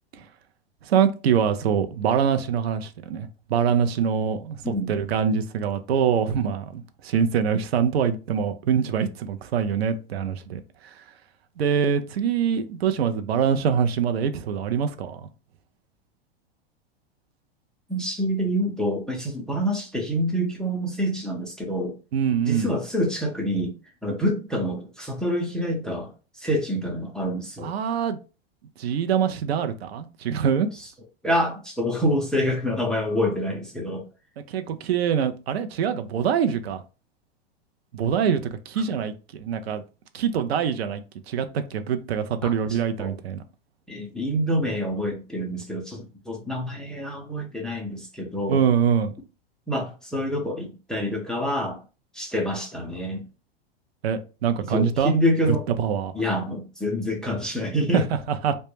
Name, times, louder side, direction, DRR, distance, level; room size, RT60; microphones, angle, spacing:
voice 1, 0.8-10.6 11.6-15.3 22.1-22.7 27.6-28.2 28.8-30.7 34.5-36.8 37.9-39.8 40.1-41.0 41.3-43.4 48.5-49.1 54.0-55.1 55.4-56.1 57.9-58.5, right 7 dB, 85° right, 0.5 m, -24 dB
voice 2, 4.6-5.0 17.9-22.0 22.5-23.7 24.0-27.7 31.2-34.0 42.4-43.2 43.9-48.6 49.7-51.8 52.1-53.2 54.7-55.6 56.1-58.1, equal, ahead, 0.4 m, -27 dB
2.1 x 2.1 x 3.0 m
hypercardioid pair, 115°, 30 cm